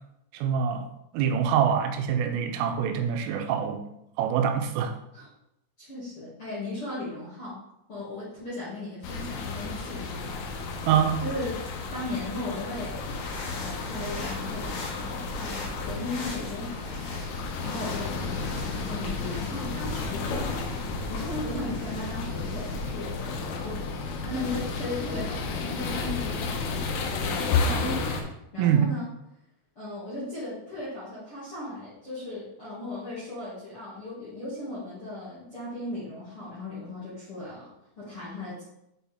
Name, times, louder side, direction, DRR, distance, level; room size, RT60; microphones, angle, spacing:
voice 1, 0.3-0.9 1.1-3.8 4.2-4.9 10.9-11.2 28.6-28.9, right 8 dB, 90° right, 5 dB, 3.3 m, -25 dB
voice 2, 5.8-7.6 7.9-10.3 11.2-13.1 13.5-17.0 17.6-20.7 21.1-23.9 24.2-26.9 27.2-29.1 29.8-37.7 38.0-38.6, left 2 dB, 45° left, -11 dB, 1.8 m, -37 dB
sound 1, 9.0-28.2, left 4 dB, 85° left, 3.5 m, -32 dB
sound 2, 13.0-22.9, left 3 dB, 65° left, 3.4 m, -40 dB
7.9 x 4.4 x 3.5 m, 0.83 s
omnidirectional pair, 5.7 m